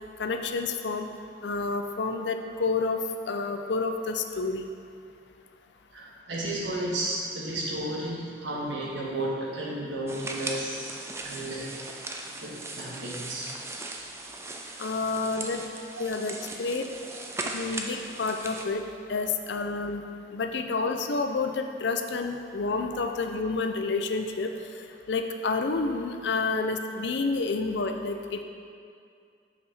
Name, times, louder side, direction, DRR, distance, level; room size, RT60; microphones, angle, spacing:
voice 1, 0.2-1.1 1.4-3.0 3.3-4.7 14.8-15.6 16.0-16.9 17.5-18.8 19.1-20.0 20.3-24.5 25.1-28.4, left 3 dB, 75° left, 6 dB, 0.5 m, -29 dB
voice 2, 5.9-11.0 11.2-11.7 12.4-13.5 13.7-13.8, right 1 dB, 85° right, -4 dB, 1.5 m, -33 dB
sound 1, 10.1-18.7, right 2 dB, 15° right, 0.4 m, -38 dB
7.0 x 5.7 x 4.1 m, 2.4 s
head